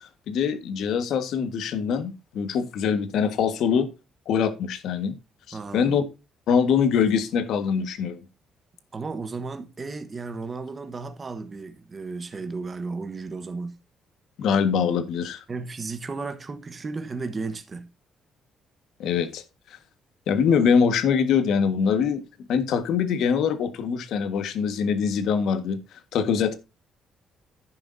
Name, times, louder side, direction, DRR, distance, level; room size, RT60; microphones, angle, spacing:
voice 1, 0.0-3.9 4.3-5.1 5.5-6.0 6.5-8.2 14.4-15.4 19.0-19.4 20.3-22.2 22.5-25.8 26.1-26.6, left 6 dB, 65° left, 1.5 m, -23 dB
voice 2, 5.5-6.0 8.9-13.7 15.5-17.9, right 4 dB, 25° right, 1.3 m, -34 dB
10.5 x 10.0 x 2.7 m
cardioid pair, 170°, 0 cm